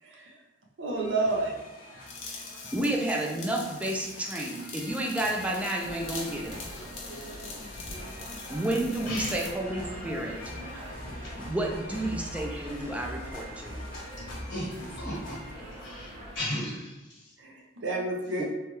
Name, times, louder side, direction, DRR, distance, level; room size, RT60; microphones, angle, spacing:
voice 1, 0.0-0.4 0.8-1.6 7.1-7.6 14.5-15.1 17.4-18.4, right 2 dB, 70° right, -1 dB, 0.6 m, -32 dB
sound 1, 0.9-15.5, left 1 dB, 50° left, 0.6 m, -44 dB
sound 2, 2.1-9.6, left 4 dB, 90° left, 0.7 m, -43 dB
voice 2, 2.7-6.6 8.5-10.4 11.4-13.8, right 1 dB, 5° right, -1 dB, 0.3 m, -31 dB
sound 3, 5.8-16.4, equal, 35° right, 1.4 m, -44 dB
voice 3, 9.0-9.4 14.5-15.2 15.8-17.3, left 1 dB, 65° left, -6 dB, 1.1 m, -35 dB
3.1 x 2.3 x 2.9 m, 1.0 s
head